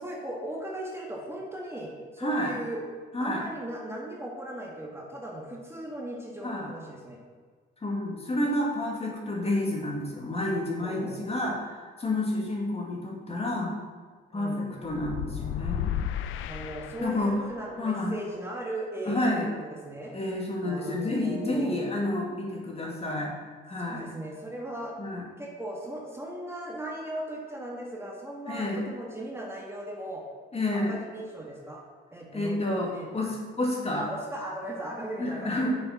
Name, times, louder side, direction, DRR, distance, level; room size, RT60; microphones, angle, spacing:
voice 1, 0.0-2.8 3.2-7.2 10.8-11.5 14.3-14.8 16.5-20.1 20.6-21.8 23.8-24.9 25.4-30.2 30.7-31.8 32.1-33.2 34.0-35.7, right 1 dB, 10° right, -2 dB, 1.8 m, -38 dB
voice 2, 2.2-2.5 3.1-3.4 6.4-6.7 7.8-13.8 14.3-15.9 17.0-17.3 17.8-18.1 19.1-19.5 20.1-23.3 23.6-24.1 25.0-25.3 28.5-28.9 30.5-31.0 32.3-34.1 35.2-35.7, left 1 dB, 30° left, -2 dB, 2.3 m, -29 dB
sound 1, 14.9-17.5, left 10 dB, 85° left, 0.5 m, -33 dB
6.9 x 6.6 x 5.9 m, 1.5 s
cardioid pair, 90°, 20 cm